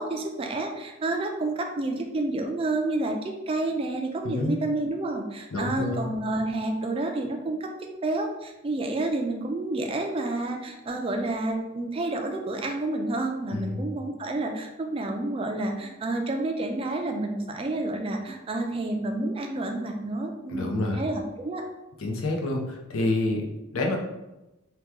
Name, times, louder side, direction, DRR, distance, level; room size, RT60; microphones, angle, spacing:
voice 1, 0.0-7.7 8.0-21.6, right 2 dB, 25° right, 3 dB, 0.3 m, -29 dB
voice 2, 4.2-4.6 5.5-6.0 13.5-13.8 20.5-21.0 22.0-24.0, left 2 dB, 85° left, 1 dB, 0.6 m, -28 dB
2.9 x 2.2 x 3.5 m, 0.99 s
head